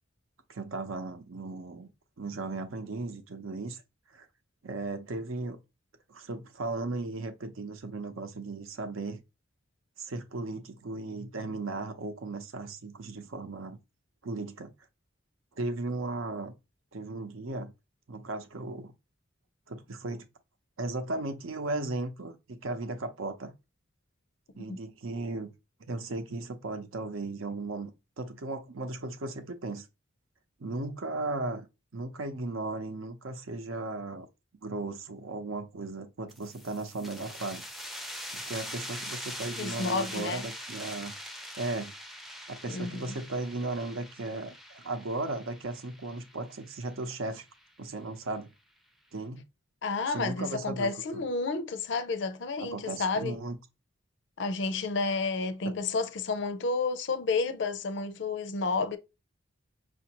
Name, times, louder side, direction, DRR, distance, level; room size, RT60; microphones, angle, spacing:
voice 1, 0.5-1.9 2.2-3.8 4.1-4.3 4.6-5.6 6.1-9.2 10.0-13.8 14.2-14.7 15.6-16.5 16.9-17.7 18.1-18.9 19.7-20.3 20.8-23.5 24.6-25.5 25.8-29.9 30.6-31.7 31.9-34.3 34.6-37.6 38.3-41.1 41.6-41.9 42.5-47.5 47.8-48.5 49.1-49.4 50.1-51.3 52.6-53.6, right 2 dB, 85° right, 0.7 m, -36 dB
sound 1, 36.3-47.6, equal, ahead, 0.4 m, -43 dB
voice 2, 39.6-40.4 42.7-43.2 49.8-53.4 54.4-59.0, left 4 dB, 60° left, 0.5 m, -31 dB
6.0 x 2.5 x 2.9 m
head